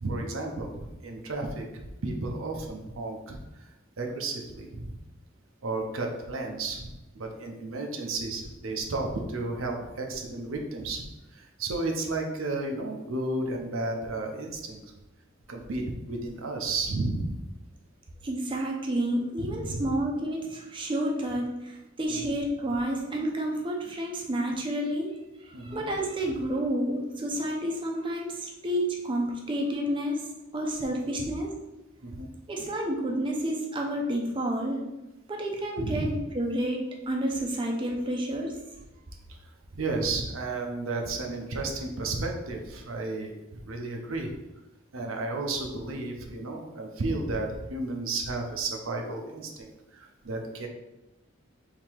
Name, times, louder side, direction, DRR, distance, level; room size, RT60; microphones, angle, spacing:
voice 1, 0.0-5.0 5.6-6.9 7.1-11.0 11.3-14.8 15.5-17.4 19.4-19.9 22.1-22.3 25.5-25.8 30.9-31.3 32.0-32.3 35.8-36.1 39.3-39.4 39.7-44.3 44.9-50.7, right 2 dB, 85° right, 2 dB, 0.7 m, -33 dB
voice 2, 18.2-30.3 30.5-31.5 32.5-34.8 35.3-38.6, right 1 dB, 25° right, 0 dB, 0.6 m, -30 dB
3.7 x 2.8 x 4.6 m, 0.97 s
head